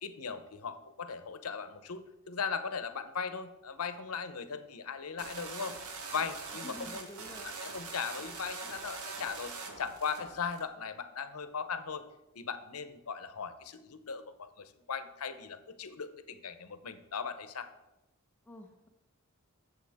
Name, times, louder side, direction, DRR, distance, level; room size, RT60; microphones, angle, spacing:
voice 1, 0.0-5.8 6.1-7.1 7.4-12.0 12.3-17.7, left 6 dB, 90° left, 11 dB, 0.8 m, -38 dB
sound 1, 5.2-10.6, right 4 dB, 80° right, 1.3 m, -43 dB
voice 2, 6.6-7.6 18.4-18.9, left 1 dB, 10° left, 2 dB, 0.8 m, -49 dB
14.0 x 7.0 x 3.5 m, 0.97 s
head